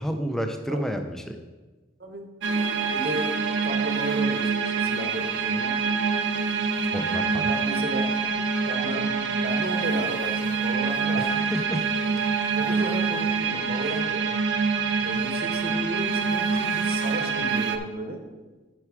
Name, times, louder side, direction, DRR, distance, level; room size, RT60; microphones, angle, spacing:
voice 1, 0.0-1.4 6.9-7.5 11.2-12.0, equal, 5° left, 5 dB, 0.5 m, -30 dB
sound 1, 2.4-17.8, right 5 dB, 85° right, 0.6 m, -26 dB
voice 2, 2.8-3.3 3.6-5.7 7.5-8.1 8.7-11.3 12.0-12.2 12.6-14.3 15.0-18.2, right 1 dB, 55° right, 4 dB, 1.0 m, -34 dB
9.1 x 4.6 x 4.8 m, 1.2 s
head